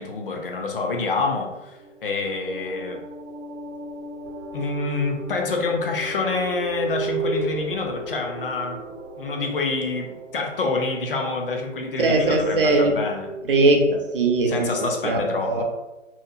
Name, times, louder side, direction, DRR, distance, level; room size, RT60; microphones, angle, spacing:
voice 1, 0.0-3.0 4.5-8.8 9.2-13.3 14.5-15.6, left 3 dB, 45° left, 2 dB, 0.4 m, -27 dB
sound 1, 1.1-2.8 4.3-4.4 5.8-9.4 10.3-14.7, right 2 dB, 60° left, 0.9 m, -35 dB
sound 2, 1.8-12.0, right 1 dB, 90° right, 0.8 m, -39 dB
voice 2, 12.0-12.9 13.5-14.7 15.0-15.6, right 2 dB, 45° right, 2 dB, 0.5 m, -20 dB
2.8 x 2.0 x 2.5 m, 1.0 s
hypercardioid pair, 150°, 39 cm